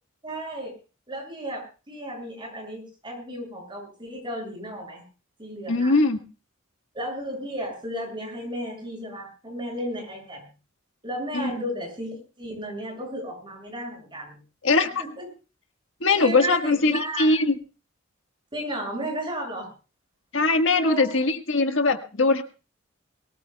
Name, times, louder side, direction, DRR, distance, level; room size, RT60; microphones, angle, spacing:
voice 1, 0.2-0.8 1.1-5.0 5.4-6.0 6.9-10.4 11.0-14.4 15.0-15.3 16.1-17.4 18.5-19.7 20.8-21.2, right 1 dB, 25° right, 1 dB, 6.6 m, -34 dB
voice 2, 5.7-6.2 11.3-11.5 14.6-15.0 16.0-17.6 20.3-22.4, left 3 dB, 65° left, 6 dB, 1.5 m, -21 dB
23.0 x 18.5 x 2.3 m, 0.33 s
head